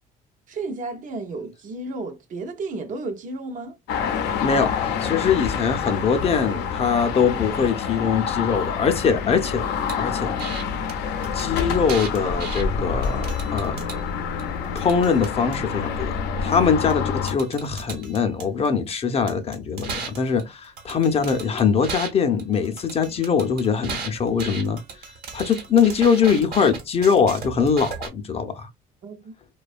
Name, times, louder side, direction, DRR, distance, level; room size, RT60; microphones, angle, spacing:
voice 1, 0.5-3.8 29.0-29.3, right 3 dB, 50° right, 0.6 m, -32 dB
sound 1, 3.9-17.4, left 6 dB, 85° left, 0.5 m, -27 dB
voice 2, 4.4-9.7 10.0-10.3 11.3-13.2 13.5-13.8 14.7-16.1 16.4-24.8 25.3-28.7, left 6 dB, 35° left, 0.5 m, -22 dB
sound 2, 9.9-10.0 10.4-10.6 10.9-11.0 11.2-12.6 13.0-14.0 14.4-15.6 16.9-17.0 17.3-18.9 19.3-22.1 22.4-28.1, right 5 dB, 65° right, 1.0 m, -35 dB
2.6 x 2.2 x 2.4 m
cardioid pair, 110°, 17 cm